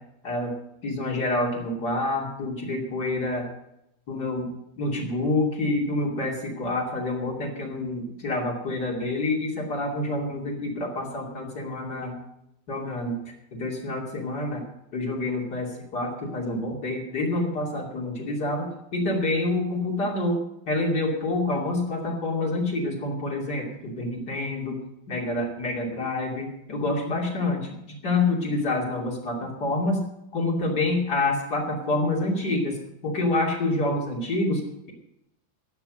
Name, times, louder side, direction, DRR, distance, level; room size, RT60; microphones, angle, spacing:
voice 1, 0.2-0.6 0.8-3.5 4.1-4.5 4.8-12.1 12.7-13.2 13.5-14.6 14.9-20.4 20.7-24.8 25.1-30.0 30.3-32.8 33.0-34.9, left 2 dB, 35° left, -1 dB, 1.7 m, -27 dB
16.0 x 6.0 x 9.7 m, 0.82 s
omnidirectional pair, 5.8 m